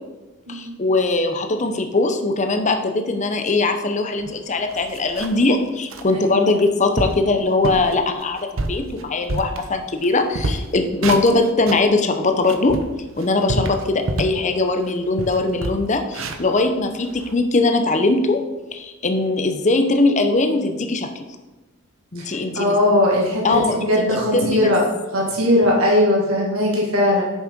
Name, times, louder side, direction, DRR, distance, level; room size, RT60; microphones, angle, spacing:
voice 1, 0.5-12.8 13.2-18.4 18.7-21.1 22.1-22.8 23.4-24.1 24.3-24.7, left 2 dB, 35° left, 6 dB, 0.8 m, -20 dB
sound 1, 4.2-4.3 4.7-5.5 5.9-6.1 6.6-6.7 7.0-7.3 7.6-7.9 8.4-10.1 10.3-11.9 12.3-14.4 14.8-14.9 15.2-17.3, right 2 dB, 70° right, 0.8 m, -28 dB
voice 2, 22.2-24.9 25.1-27.2, left 1 dB, 85° right, -2 dB, 1.8 m, -19 dB
6.6 x 6.4 x 5.2 m, 1.1 s
head